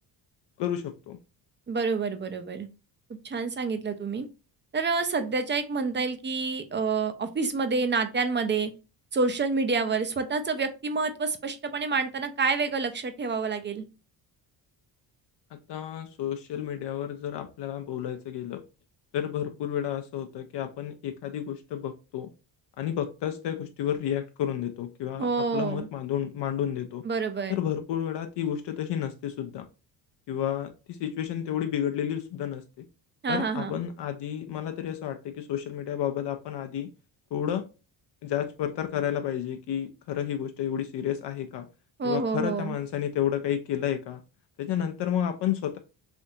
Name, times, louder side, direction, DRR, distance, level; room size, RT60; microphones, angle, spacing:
voice 1, 0.6-1.2 15.7-18.6 19.1-22.3 22.8-27.0 27.5-29.6 30.3-32.9 33.3-36.9 37.3-37.7 38.2-41.7 42.0-44.2 44.6-45.8, left 10 dB, 65° left, 7 dB, 0.6 m, -31 dB
voice 2, 1.7-2.7 3.2-4.3 4.7-8.7 9.1-13.8 25.2-25.9 27.0-27.6 33.2-33.8 42.0-42.8, right 4 dB, 25° right, 10 dB, 0.5 m, -28 dB
3.4 x 2.7 x 2.6 m, 0.30 s
cardioid pair, 85°, 46 cm